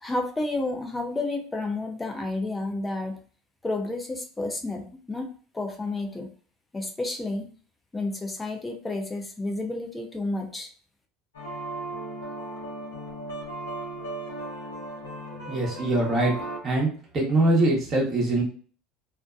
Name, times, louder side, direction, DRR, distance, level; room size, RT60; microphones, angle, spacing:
voice 1, 0.0-3.2 3.6-5.3 5.5-6.3 6.7-7.5 7.9-10.7, left 2 dB, 15° left, 3 dB, 0.7 m, -31 dB
sound 1, 11.3-16.6, right 1 dB, 90° left, 0.8 m, -36 dB
voice 2, 15.5-16.3 16.6-18.4, right 2 dB, 35° right, -1 dB, 1.0 m, -23 dB
2.6 x 2.1 x 2.4 m, 0.42 s
hypercardioid pair, 80°, 0 cm